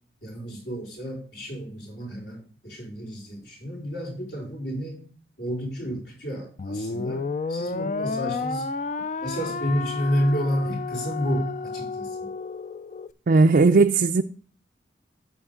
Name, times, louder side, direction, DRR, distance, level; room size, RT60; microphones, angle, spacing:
voice 1, 0.2-5.1 5.4-8.7 9.2-12.3, equal, 70° left, 4.4 m, -30 dB
sound 1, 6.6-13.1, left 4 dB, 40° left, 0.4 m, -31 dB
voice 2, 13.3-14.2, right 3 dB, 50° right, 0.4 m, -17 dB
9.2 x 7.2 x 3.7 m
head